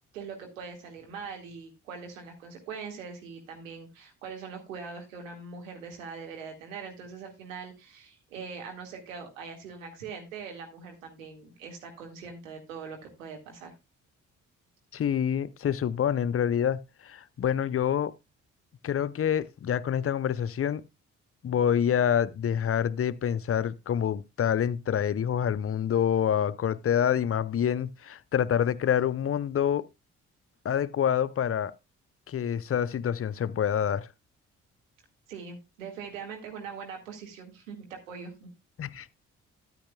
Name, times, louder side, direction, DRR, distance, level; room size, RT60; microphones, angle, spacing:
voice 1, 0.1-13.7 35.3-38.5, right 5 dB, 85° right, 1.9 m, -42 dB
voice 2, 14.9-18.1 18.8-20.8 21.4-29.8 30.6-31.7 32.3-34.1 38.8-39.1, left 9 dB, 35° left, 0.7 m, -27 dB
13.0 x 9.1 x 2.3 m
figure-of-eight pair, 40°, 39 cm